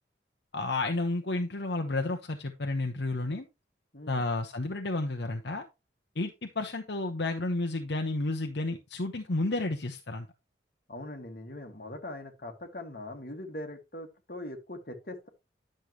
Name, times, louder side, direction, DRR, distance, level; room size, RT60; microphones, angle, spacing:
voice 1, 0.5-3.5 4.1-5.7 6.2-10.3, left 2 dB, 70° left, 0.9 m, -31 dB
voice 2, 10.9-15.3, left 1 dB, 50° left, 1.6 m, -41 dB
10.5 x 6.5 x 3.0 m
head